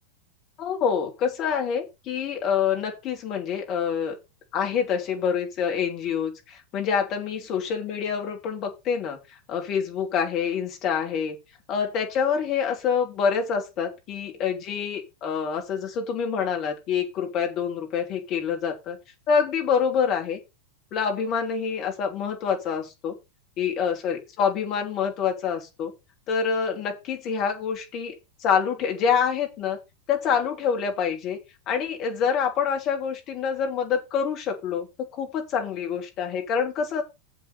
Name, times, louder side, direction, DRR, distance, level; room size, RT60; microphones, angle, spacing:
voice 1, 0.6-4.2 4.5-11.4 11.7-19.0 19.3-20.4 20.9-23.2 23.6-25.9 26.3-29.8 30.1-31.4 31.7-37.0, left 7 dB, 35° left, 3 dB, 3.1 m, -26 dB
7.2 x 7.0 x 6.7 m, 0.26 s
figure-of-eight pair, 90°, 0 cm